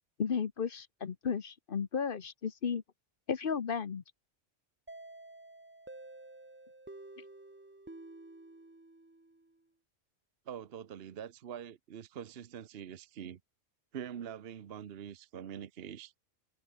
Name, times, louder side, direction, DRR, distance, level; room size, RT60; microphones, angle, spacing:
voice 1, 0.2-2.8 3.3-4.0, left 6 dB, 50° left, 1.0 m, -34 dB
sound 1, 4.9-9.6, right 2 dB, 15° right, 0.5 m, -51 dB
voice 2, 10.5-13.4 13.9-16.1, right 8 dB, 55° right, 1.0 m, -44 dB
omnidirectional pair, 1.3 m